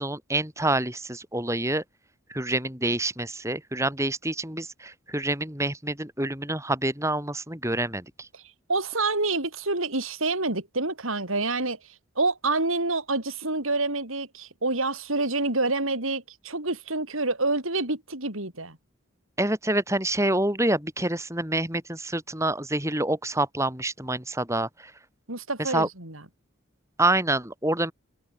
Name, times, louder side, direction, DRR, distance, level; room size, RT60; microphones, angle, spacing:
voice 1, 0.0-1.8 2.3-8.3 19.4-24.9 25.6-25.9 27.0-27.9, right 1 dB, 15° right, 6.1 m, -27 dB
voice 2, 8.7-11.8 12.2-18.8 25.3-26.2, right 3 dB, 75° right, 6.5 m, -27 dB
head